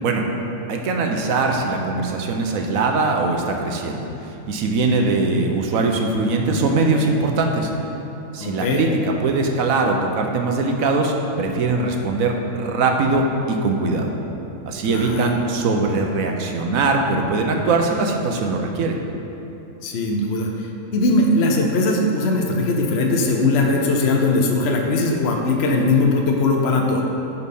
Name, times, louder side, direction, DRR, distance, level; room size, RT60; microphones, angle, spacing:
voice 1, 0.7-7.7 8.3-14.1 14.7-19.0, right 3 dB, 75° right, 2 dB, 1.2 m, -21 dB
voice 2, 8.4-8.8 14.8-15.3 19.8-20.5 20.9-27.0, left 2 dB, 55° left, 0 dB, 0.9 m, -20 dB
10.5 x 4.3 x 5.4 m, 3.0 s
omnidirectional pair, 1.5 m